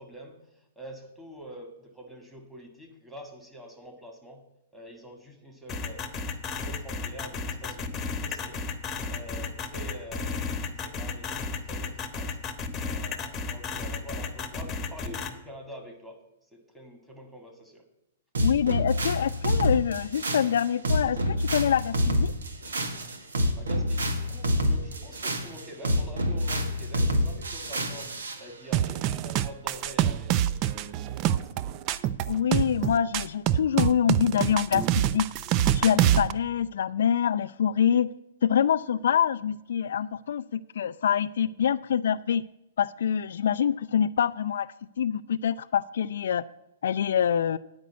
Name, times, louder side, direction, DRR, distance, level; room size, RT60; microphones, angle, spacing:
voice 1, 0.0-4.5 4.7-8.7 9.1-12.4 12.8-16.2 16.5-17.8 23.5-31.8, equal, 5° right, 2 dB, 1.9 m, -46 dB
sound 1, 5.7-15.3, left 4 dB, 20° left, 1.0 m, -33 dB
sound 2, 18.3-28.4, equal, 85° right, 1.4 m, -27 dB
voice 2, 18.4-22.3 32.3-35.3 35.7-38.1 38.4-40.4 40.8-42.4 42.8-44.7 45.0-46.4 46.8-47.6, left 8 dB, 75° left, 13 dB, 0.3 m, -25 dB
sound 3, 28.7-36.3, right 11 dB, 35° right, 0.4 m, -25 dB
9.5 x 5.2 x 8.0 m, 0.86 s
hypercardioid pair, 130°, 0 cm